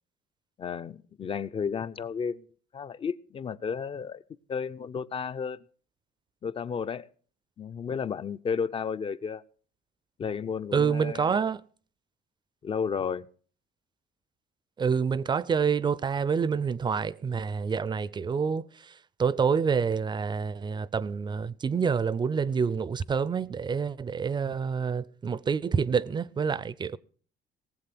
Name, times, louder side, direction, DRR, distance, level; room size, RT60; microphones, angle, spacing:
voice 1, 0.6-2.4 2.7-4.2 4.5-5.6 6.4-7.1 7.6-9.4 10.2-11.4 12.6-13.3, left 6 dB, 35° left, 0.5 m, -32 dB
voice 2, 10.7-11.6 14.8-18.9 19.2-27.0, right 6 dB, 25° right, 0.5 m, -27 dB
18.5 x 7.6 x 6.0 m
cardioid pair, 110°, 17 cm